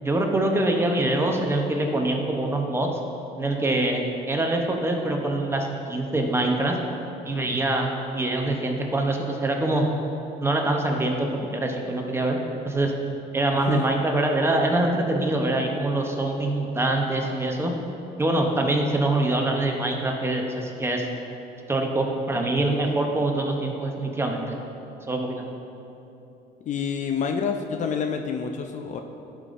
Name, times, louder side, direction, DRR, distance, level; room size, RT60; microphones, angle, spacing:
voice 1, 0.0-2.9 3.4-6.8 7.2-9.9 10.4-12.4 12.6-12.9 13.3-17.7 18.2-21.1 21.7-24.6 25.1-25.4, right 2 dB, 15° right, 2 dB, 0.7 m, -24 dB
voice 2, 13.5-13.8 26.6-29.0, left 6 dB, 45° left, 5 dB, 0.4 m, -28 dB
11.0 x 5.1 x 2.5 m, 3.0 s
cardioid pair, 110°, 17 cm